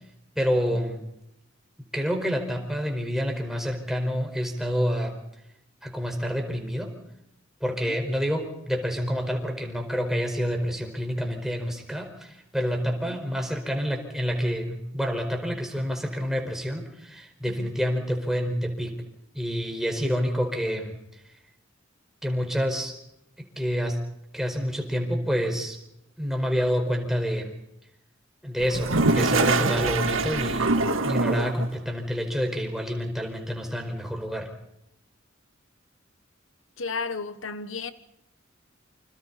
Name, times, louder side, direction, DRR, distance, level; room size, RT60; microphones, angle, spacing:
voice 1, 0.3-1.0 1.8-5.1 5.8-6.9 7.6-18.9 19.3-20.9 22.2-23.0 23.4-24.0 24.3-25.8 26.2-27.5 28.4-34.5, equal, ahead, 4.7 m, -28 dB
Toilet flush, 28.6-31.7, right 3 dB, 85° right, 1.7 m, -24 dB
voice 2, 36.8-37.9, left 4 dB, 75° left, 1.2 m, -33 dB
29.0 x 27.0 x 4.2 m
head